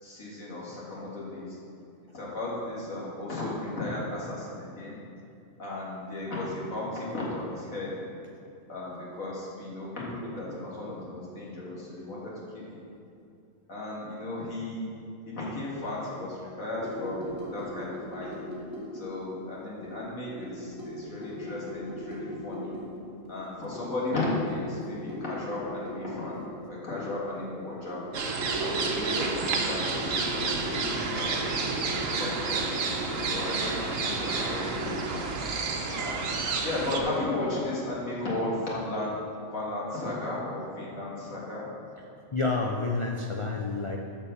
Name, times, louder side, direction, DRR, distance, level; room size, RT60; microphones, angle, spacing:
voice 1, 0.0-1.6 2.1-5.0 5.6-8.0 8.7-12.8 13.7-14.9 15.3-18.3 18.9-22.8 23.3-26.4 26.7-28.0 28.6-31.3 31.8-32.7 33.3-35.4 36.0-36.3 36.6-39.2 39.5-41.7, left 2 dB, 75° left, -5 dB, 2.5 m, -35 dB
sound 1, 16.7-19.4 19.8-23.0 23.2-23.3 23.7-27.3 27.9-35.0, left 1 dB, 10° right, 2.2 m, -39 dB
sound 2, 28.1-37.0, right 4 dB, 70° right, 1.2 m, -30 dB
voice 2, 42.3-44.0, left 3 dB, 40° left, 0 dB, 0.4 m, -29 dB
9.3 x 5.4 x 6.9 m, 2.5 s
omnidirectional pair, 1.4 m